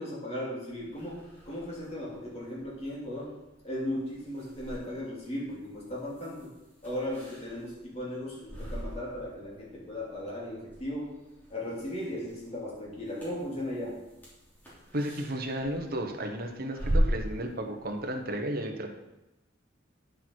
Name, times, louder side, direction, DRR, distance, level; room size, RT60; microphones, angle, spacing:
voice 1, 0.0-3.3 3.6-6.5 6.8-11.1 11.5-14.0, left 1 dB, 35° left, -5 dB, 2.7 m, -37 dB
sound 1, 0.7-18.3, equal, 10° left, 3.2 m, -39 dB
voice 2, 14.9-18.9, right 1 dB, 50° right, 3 dB, 1.1 m, -33 dB
9.7 x 6.9 x 4.6 m, 0.97 s
head